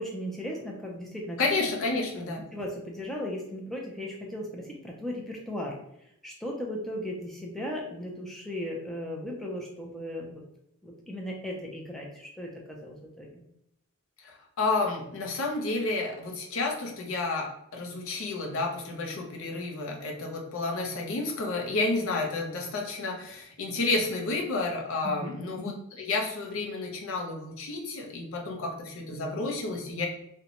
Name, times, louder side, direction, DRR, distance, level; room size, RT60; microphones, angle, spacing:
voice 1, 0.0-1.4 2.5-5.8 6.2-10.4 10.8-13.3 25.0-25.3, equal, ahead, -2 dB, 0.4 m, -36 dB
voice 2, 1.4-2.4 14.2-30.1, left 3 dB, 70° left, 1 dB, 0.5 m, -31 dB
2.6 x 2.1 x 2.8 m, 0.79 s
head